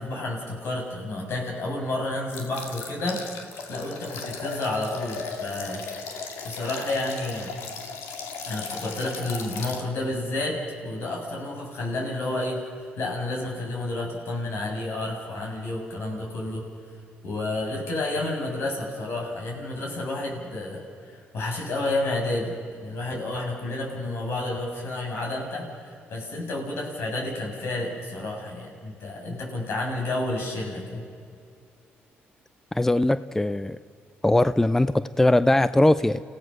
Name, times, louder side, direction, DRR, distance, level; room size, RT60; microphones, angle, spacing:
voice 1, 0.0-3.2 3.7-5.8 6.4-7.6 8.5-12.6 13.0-16.6 17.2-22.5 22.8-31.0, left 2 dB, 65° left, 0 dB, 6.4 m, -30 dB
sound 1, 2.3-9.8, left 5 dB, 85° left, 2.3 m, -36 dB
voice 2, 32.7-33.8 34.2-36.2, left 1 dB, 10° left, 14 dB, 0.5 m, -20 dB
29.5 x 16.5 x 6.3 m, 2.4 s
cardioid pair, 80°, 4 cm